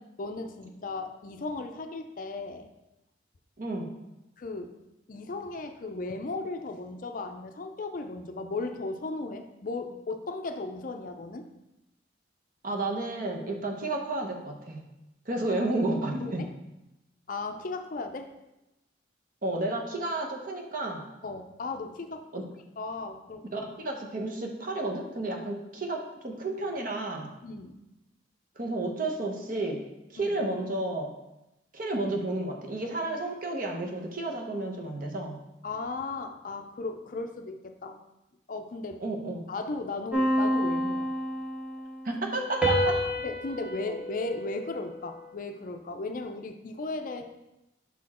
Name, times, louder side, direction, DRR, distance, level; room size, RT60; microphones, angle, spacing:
voice 1, 0.2-2.7 4.4-4.8 5.1-11.4 15.6-15.7 16.1-16.5 17.3-18.3 21.2-22.3 22.8-23.5 27.4-27.8 30.2-30.3 35.6-38.0 38.5-39.0 39.5-41.1 43.2-47.2, left 3 dB, 45° left, 6 dB, 0.4 m, -36 dB
voice 2, 3.6-3.9 12.6-14.8 15.3-16.4 19.4-21.0 22.3-22.4 23.5-27.3 28.6-29.8 30.1-31.1 31.7-35.4 39.0-39.4 42.0-43.0, right 2 dB, 45° right, 2 dB, 0.8 m, -31 dB
sound 1, 40.1-41.9 42.6-45.2, equal, 5° right, 0.8 m, -29 dB
5.8 x 4.3 x 4.2 m, 0.96 s
head